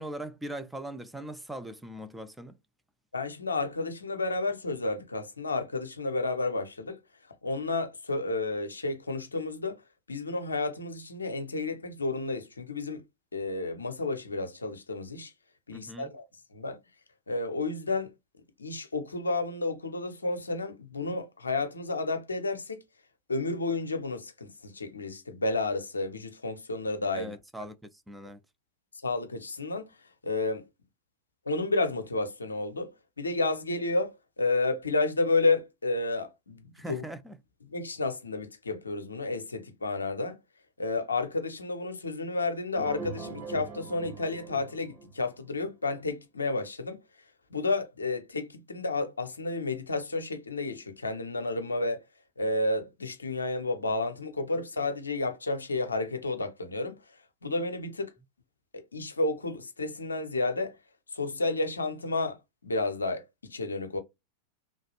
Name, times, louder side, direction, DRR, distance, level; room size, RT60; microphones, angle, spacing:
voice 1, 0.0-2.6 15.7-16.1 27.1-27.8 28.1-28.4 36.7-37.4, right 1 dB, 5° right, 0.3 m, -40 dB
voice 2, 3.1-7.0 7.4-9.8 10.1-13.0 13.3-15.3 15.7-16.2 16.5-16.8 17.3-18.1 18.6-22.8 23.3-27.3 29.0-29.9 30.2-30.6 31.5-32.9 33.2-37.0 37.7-40.4 40.8-47.0 47.5-52.0 52.4-57.0 57.4-58.1 58.7-60.8 61.1-62.4 62.6-64.0, left 3 dB, 75° left, 0.5 m, -31 dB
sound 1, 42.7-45.6, right 5 dB, 45° right, 2.1 m, -42 dB
3.1 x 2.3 x 2.8 m
figure-of-eight pair, 90°, 0 cm